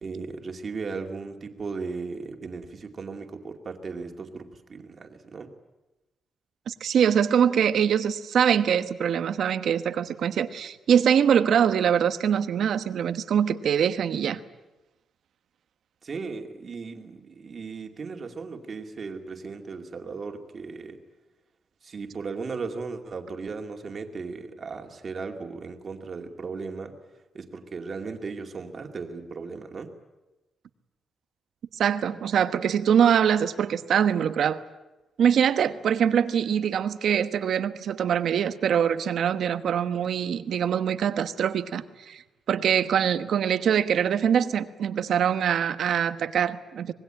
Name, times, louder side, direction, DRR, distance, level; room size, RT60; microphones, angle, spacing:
voice 1, 0.0-5.5 16.0-21.0 21.8-26.9 27.3-29.9, right 4 dB, 40° right, 4 dB, 2.4 m, -36 dB
voice 2, 6.7-14.4 31.7-34.6 35.2-42.2 42.5-46.9, right 8 dB, 65° right, 11 dB, 1.1 m, -23 dB
25.5 x 20.5 x 9.0 m, 1.1 s
cardioid pair, 140°, 0 cm